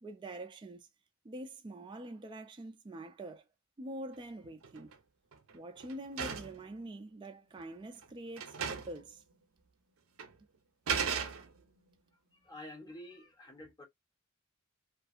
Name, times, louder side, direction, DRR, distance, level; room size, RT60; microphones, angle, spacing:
voice 1, 0.0-0.9 1.2-3.4 3.8-4.9 5.5-9.2, right 1 dB, 20° right, 0.3 m, -45 dB
sound 1, 4.4-4.9 5.3-6.6 7.6-7.7 8.0-8.1 8.4-9.0 9.3-9.4 10.2-10.3 10.9-11.8, right 6 dB, 65° right, 0.6 m, -36 dB
voice 2, 12.3-13.8, left 1 dB, 20° left, 0.8 m, -49 dB
2.5 x 2.4 x 2.4 m
head